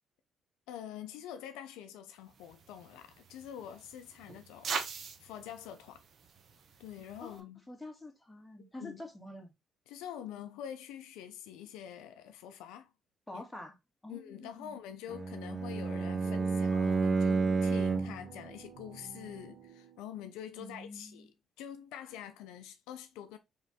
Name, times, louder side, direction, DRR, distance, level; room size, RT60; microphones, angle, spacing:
voice 1, 0.7-4.7 5.2-6.0 6.8-7.6 8.6-9.0 9.9-12.9 13.3-13.4 14.1-21.3 21.6-23.4, left 10 dB, 85° left, 0.5 m, -46 dB
sound 1, 2.3-7.4, right 6 dB, 55° right, 0.8 m, -43 dB
voice 2, 7.2-9.5 13.3-13.8 14.0-14.8 20.6-21.3, left 1 dB, 10° left, 1.7 m, -47 dB
Bowed string instrument, 15.1-18.3, right 4 dB, 30° right, 0.5 m, -30 dB
sound 2, 15.7-20.2, right 6 dB, 85° right, 1.1 m, -51 dB
3.7 x 3.1 x 4.1 m
supercardioid pair, 65°, 0 cm